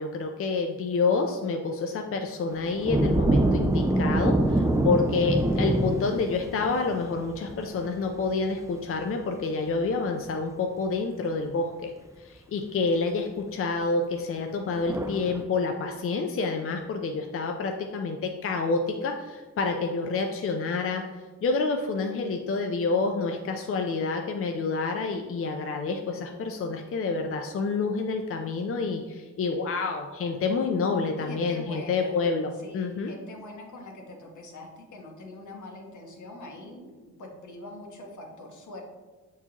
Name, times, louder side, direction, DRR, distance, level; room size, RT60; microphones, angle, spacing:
voice 1, 0.0-11.9 12.2-21.0 21.4-33.1, left 4 dB, 45° left, 3 dB, 0.5 m, -28 dB
sound 1, 2.6-8.3 14.8-15.4, right 1 dB, 10° right, 0.4 m, -25 dB
voice 2, 31.2-32.2 32.6-38.8, left 2 dB, 75° left, 1 dB, 1.3 m, -43 dB
7.0 x 4.6 x 2.9 m, 1.3 s
cardioid pair, 115°, 30 cm